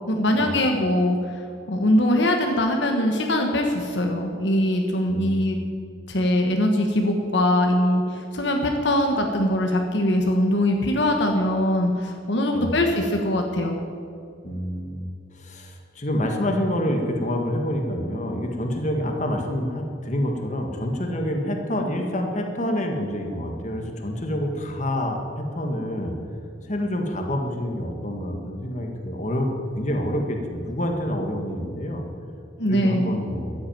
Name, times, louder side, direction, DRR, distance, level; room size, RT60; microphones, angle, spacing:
voice 1, 0.1-5.6 6.1-13.8 32.6-33.2, left 1 dB, 65° left, 3 dB, 1.3 m, -22 dB
voice 2, 5.1-5.6 12.5-12.8 14.4-15.1 15.3-26.1 26.6-29.5 29.7-32.0 32.7-33.5, equal, 40° left, 2 dB, 1.7 m, -27 dB
13.5 x 8.6 x 9.3 m, 2.4 s
head